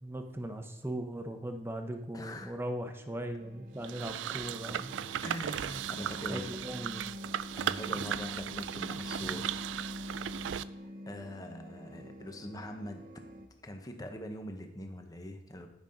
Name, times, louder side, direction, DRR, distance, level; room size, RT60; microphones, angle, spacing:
voice 1, 0.0-4.9 6.3-7.1, right 1 dB, 15° right, 5 dB, 0.8 m, -39 dB
voice 2, 2.1-2.6 5.2-6.5 7.6-9.5 10.7-13.1 13.6-15.7, left 1 dB, 20° left, 5 dB, 0.9 m, -43 dB
sound 1, 3.4-13.5, left 1 dB, 50° right, 0.8 m, -45 dB
sound 2, 3.8-10.6, right 10 dB, 85° right, 0.3 m, -36 dB
10.0 x 5.4 x 5.2 m, 0.83 s
head